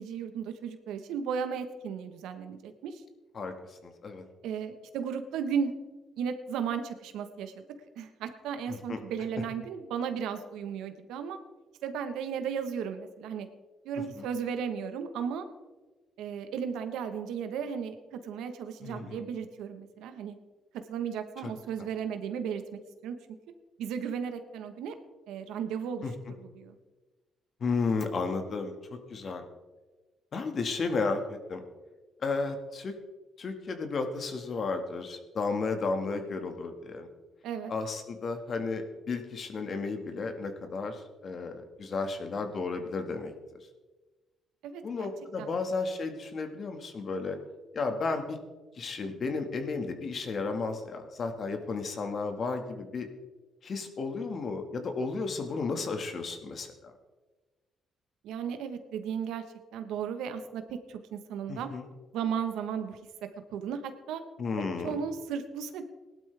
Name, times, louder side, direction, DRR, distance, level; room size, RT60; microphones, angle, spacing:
voice 1, 0.0-3.0 4.4-5.7 6.2-7.6 8.0-11.4 11.8-13.5 13.8-15.4 16.2-20.3 20.9-23.1 23.8-24.9 25.3-26.0 26.4-26.8 37.4-37.7 44.6-45.1 45.4-45.5 58.2-59.4 59.7-61.7 62.1-63.0 63.5-64.2 64.6-65.8, right 7 dB, 90° right, 8 dB, 1.2 m, -35 dB
voice 2, 3.4-4.2 8.7-9.0 14.2-14.3 18.8-19.2 21.4-21.5 26.0-26.3 27.6-29.4 30.3-31.6 32.2-33.0 33.4-37.1 37.7-43.3 44.8-47.4 47.7-48.4 48.8-53.1 53.6-56.9 61.5-61.9 64.4-65.0, left 4 dB, 50° left, 6 dB, 1.8 m, -33 dB
18.5 x 12.0 x 3.5 m, 1.2 s
cardioid pair, 90°, 0 cm